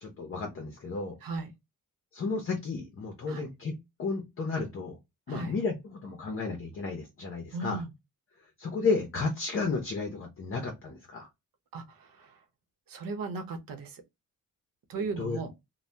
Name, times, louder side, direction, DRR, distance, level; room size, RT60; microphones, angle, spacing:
voice 1, 0.0-1.2 2.1-3.7 4.0-5.0 5.3-7.8 8.6-11.3 14.9-15.4, left 4 dB, 40° left, 0.6 m, -33 dB
voice 2, 7.5-7.9 11.7-12.4 12.9-14.0 14.9-15.5, right 4 dB, 75° right, 0.9 m, -37 dB
2.7 x 2.2 x 3.2 m
wide cardioid pair, 175°, 35 cm